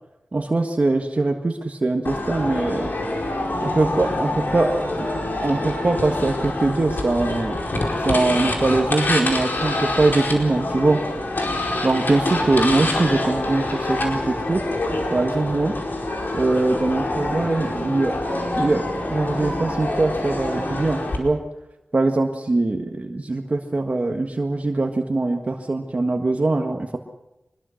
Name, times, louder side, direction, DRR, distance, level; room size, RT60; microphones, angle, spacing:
voice 1, 0.3-2.9 3.6-4.8 5.4-7.6 8.0-11.0 11.8-14.6 14.9-15.7 16.3-18.2 18.5-21.4 21.9-27.0, right 2 dB, 45° right, 3 dB, 1.6 m, -22 dB
sound 1, 2.0-21.2, left 2 dB, 70° left, 4.7 m, -26 dB
24.5 x 21.0 x 6.4 m, 0.97 s
wide cardioid pair, 90°, 3 cm